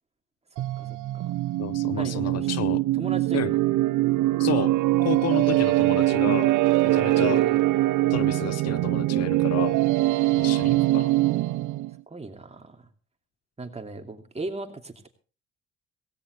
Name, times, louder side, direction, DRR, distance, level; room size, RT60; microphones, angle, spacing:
sound 1, 0.6-11.9, right 17 dB, 85° right, 0.7 m, -23 dB
voice 1, 0.8-1.3 2.0-2.5 3.0-3.6 7.0-7.6 12.1-12.8 13.6-15.1, right 3 dB, 20° right, 5 dB, 2.6 m, -37 dB
voice 2, 1.6-2.8 3.3-3.5 4.4-4.7 5.0-6.5 6.8-7.4 8.1-9.8 10.3-11.1, left 11 dB, 60° left, 18 dB, 0.6 m, -31 dB
17.5 x 17.0 x 3.2 m, 0.34 s
cardioid pair, 90°, 30 cm